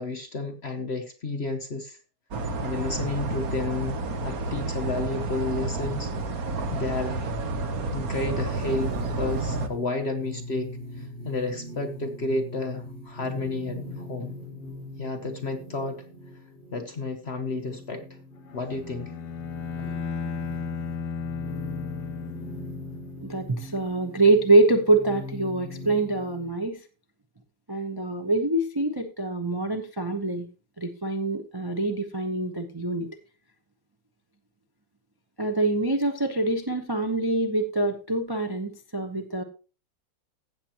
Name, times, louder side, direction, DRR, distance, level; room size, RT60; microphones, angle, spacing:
voice 1, 0.0-2.0 2.6-7.3 7.9-14.3 15.0-16.0 16.7-18.1 18.5-19.1, left 2 dB, 45° left, 5 dB, 0.9 m, -31 dB
sound 1, 2.3-9.7, right 2 dB, 55° right, 1.4 m, -30 dB
sound 2, 8.5-26.5, left 1 dB, 25° left, 7.0 m, -41 dB
Bowed string instrument, 18.5-23.3, left 5 dB, 85° left, 1.7 m, -34 dB
voice 2, 23.2-26.8 27.7-30.5 30.8-33.1 35.4-39.4, right 2 dB, 25° right, 3 dB, 0.5 m, -25 dB
15.5 x 7.3 x 3.0 m, 0.35 s
omnidirectional pair, 2.0 m